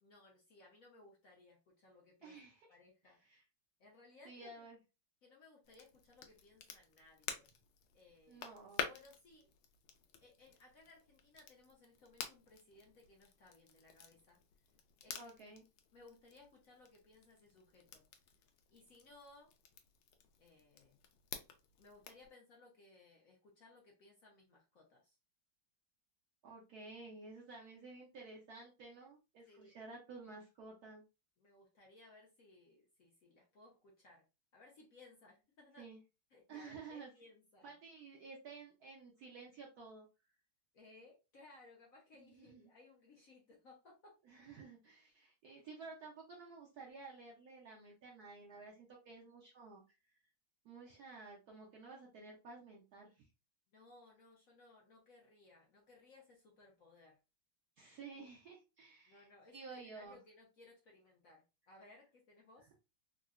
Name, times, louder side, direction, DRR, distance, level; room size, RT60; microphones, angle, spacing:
voice 1, 0.0-2.4 2.7-3.2 3.8-4.7 5.2-7.5 7.9-8.6 8.8-9.5 10.2-14.4 15.0-15.3 15.9-18.0 18.7-19.5 20.4-21.0 21.8-25.2 29.5-29.7 31.4-34.3 34.5-35.9 36.3-37.7 40.7-44.2 53.7-57.2 59.1-62.7, left 2 dB, 65° left, -1 dB, 0.8 m, -62 dB
voice 2, 2.2-2.7 3.0-3.4 4.2-4.8 8.3-8.9 15.2-15.6 26.4-31.0 35.8-36.0 36.5-37.1 37.6-40.1 42.2-42.6 44.3-49.8 50.6-53.3 57.8-59.2 59.5-60.2, right 4 dB, 70° right, -2 dB, 0.9 m, -53 dB
Crackle, 5.6-22.3, left 8 dB, 80° left, 1.3 m, -50 dB
3.7 x 2.1 x 2.4 m, 0.29 s
omnidirectional pair, 2.2 m